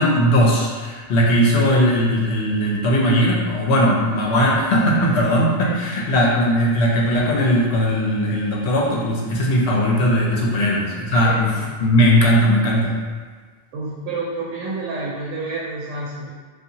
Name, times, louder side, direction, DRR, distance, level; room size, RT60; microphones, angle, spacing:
voice 1, 0.0-12.9, equal, 70° left, -2 dB, 0.8 m, -18 dB
voice 2, 5.6-6.0 10.3-10.4 11.1-11.8 13.7-16.3, right 3 dB, 85° right, -5 dB, 0.9 m, -30 dB
2.8 x 2.4 x 2.6 m, 1.5 s
omnidirectional pair, 1.2 m